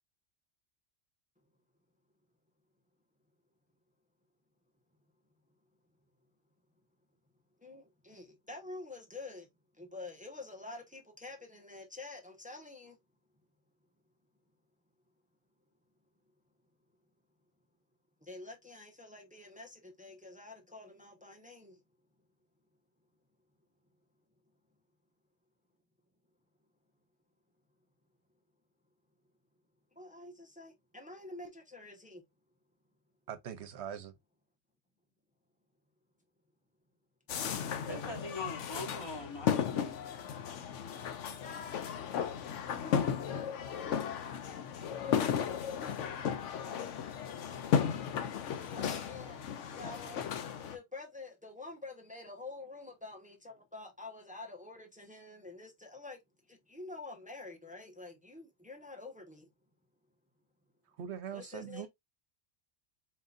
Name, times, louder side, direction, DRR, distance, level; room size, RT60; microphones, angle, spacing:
voice 1, 7.6-9.5 9.7-13.0 18.2-21.8 29.9-32.2 48.7-49.4 49.7-50.2 50.7-56.2 56.5-59.5 61.3-61.9, left 2 dB, 5° right, 0.8 m, -48 dB
voice 2, 33.3-34.1 61.0-61.9, right 8 dB, 70° right, 1.0 m, -42 dB
sound 1, 37.3-50.8, left 8 dB, 90° left, 1.0 m, -35 dB
voice 3, 37.6-40.0, left 1 dB, 20° left, 1.8 m, -43 dB
4.3 x 3.7 x 2.4 m
omnidirectional pair, 1.2 m